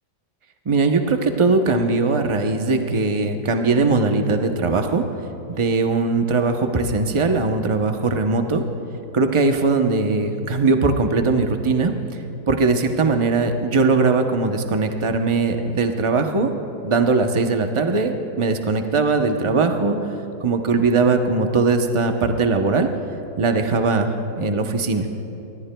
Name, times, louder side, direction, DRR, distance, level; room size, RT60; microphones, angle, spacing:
voice 1, 0.7-5.0 5.6-8.6 9.1-11.9 12.5-16.5 16.8-20.0 20.4-22.9 23.4-24.1 24.4-25.1, right 3 dB, 35° right, 5 dB, 0.4 m, -20 dB
24.5 x 21.0 x 2.3 m, 2.9 s
omnidirectional pair, 1.8 m